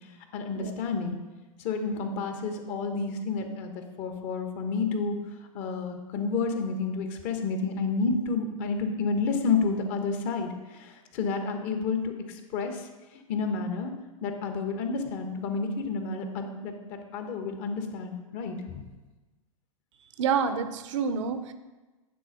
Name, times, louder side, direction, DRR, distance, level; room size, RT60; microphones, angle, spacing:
voice 1, 0.3-1.2 1.6-5.2 5.5-12.9 13.3-13.9 14.2-18.8, left 4 dB, 40° left, 6 dB, 1.2 m, -30 dB
voice 2, 20.2-21.5, right 6 dB, 60° right, 10 dB, 0.8 m, -28 dB
9.9 x 4.1 x 6.1 m, 1.2 s
hypercardioid pair, 105°, 18 cm